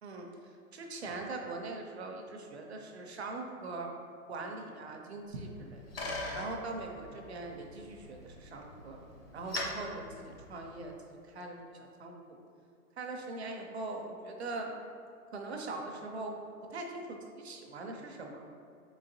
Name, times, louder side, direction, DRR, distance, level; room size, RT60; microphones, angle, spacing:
voice 1, 0.7-3.9 4.3-5.9 6.3-9.0 9.3-12.4 13.0-14.7 15.3-16.4 16.7-18.4, right 3 dB, 45° right, 2 dB, 0.5 m, -41 dB
Bicycle, 5.3-11.0, left 1 dB, 40° left, 0.6 m, -42 dB
3.9 x 3.8 x 2.6 m, 2.4 s
hypercardioid pair, 170°, 46 cm